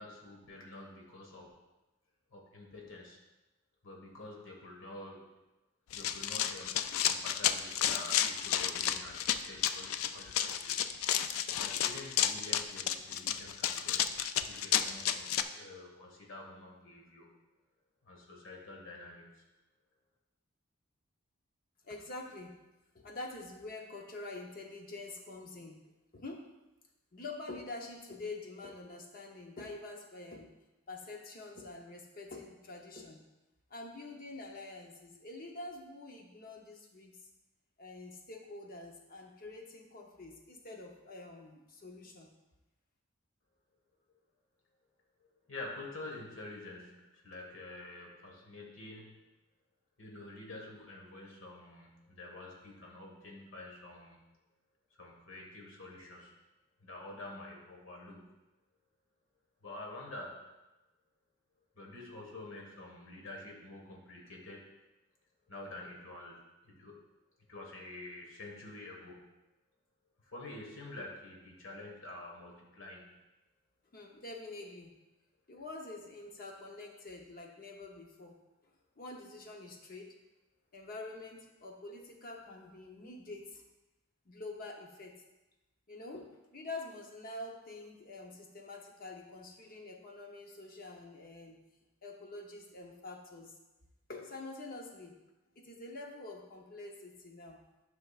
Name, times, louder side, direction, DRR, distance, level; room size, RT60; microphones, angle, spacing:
voice 1, 0.0-1.5 2.3-3.2 3.8-5.3 5.9-10.8 11.6-14.1 14.4-17.3 18.0-19.4 45.5-49.2 50.0-54.2 54.9-56.3 56.8-58.3 59.6-60.4 61.7-64.7 65.5-66.4 66.6-66.9 67.5-69.3 70.2-73.2, left 2 dB, 65° left, -1 dB, 1.6 m, -48 dB
Run, 5.9-15.4, left 10 dB, 80° left, 0.4 m, -31 dB
voice 2, 21.8-22.6 22.9-25.8 26.1-26.4 27.1-30.5 30.9-33.2 33.7-37.2 37.8-42.3 73.9-74.9 75.5-78.4 79.0-80.1 80.7-83.6 84.3-85.1 85.9-91.6 92.0-93.5 94.1-95.2 95.6-97.6, left 2 dB, 45° left, 1 dB, 0.8 m, -46 dB
10.0 x 5.9 x 2.4 m, 1.0 s
head